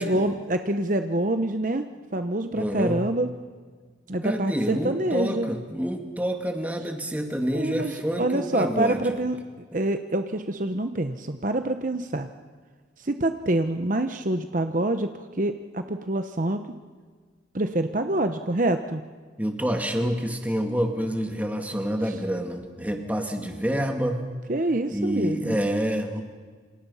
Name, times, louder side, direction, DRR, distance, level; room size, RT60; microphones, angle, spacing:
voice 1, 0.0-1.8 2.1-3.3 4.1-5.5 7.5-9.4 9.7-12.3 13.0-16.6 17.5-19.0 24.5-25.6, right 1 dB, 45° right, 8 dB, 1.0 m, -26 dB
voice 2, 2.5-3.0 4.2-9.2 19.4-24.2 24.9-26.2, equal, 10° right, 4 dB, 2.3 m, -27 dB
28.5 x 27.0 x 5.7 m, 1.5 s
head